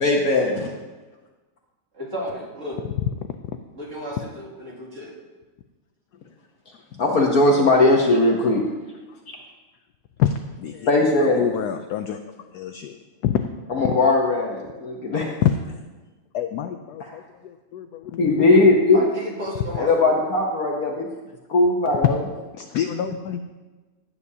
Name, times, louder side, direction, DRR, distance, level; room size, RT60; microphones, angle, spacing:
voice 1, 0.0-0.7 7.0-8.6 10.9-11.5 13.7-15.3 18.2-19.0 19.7-21.1 21.5-22.2, left 2 dB, 55° left, 0 dB, 1.2 m, -19 dB
voice 2, 1.9-2.8 3.8-5.2 18.9-20.2, equal, 40° right, -4 dB, 2.5 m, -33 dB
voice 3, 10.2-10.9 11.2-12.2 12.5-13.4 15.4-15.8 16.3-18.7 22.0-22.1 22.5-23.5, left 9 dB, 75° left, 7 dB, 0.9 m, -26 dB
15.5 x 8.6 x 2.8 m, 1.2 s
omnidirectional pair, 2.2 m